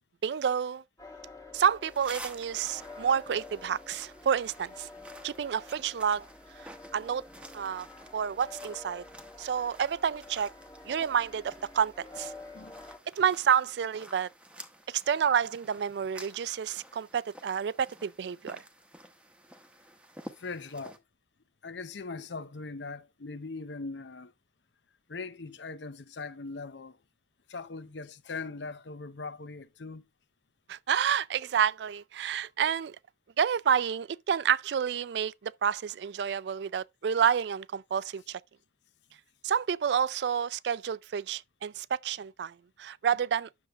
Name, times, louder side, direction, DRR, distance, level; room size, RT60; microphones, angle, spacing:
voice 1, 0.2-0.8 1.5-4.9 5.2-6.3 6.9-7.2 7.5-7.9 8.1-9.0 9.4-10.5 10.9-12.3 13.2-14.3 14.9-18.6 30.7-33.0 33.4-38.4 39.4-43.5, right 8 dB, 65° right, 0.3 m, -29 dB
sound 1, 1.0-13.0, left 3 dB, 20° left, 1.4 m, -49 dB
sound 2, 1.8-21.0, right 1 dB, 5° right, 0.9 m, -51 dB
voice 2, 20.4-21.0 21.6-24.3 25.1-27.0 27.5-30.1, left 3 dB, 75° left, 0.7 m, -40 dB
9.7 x 6.9 x 2.4 m
head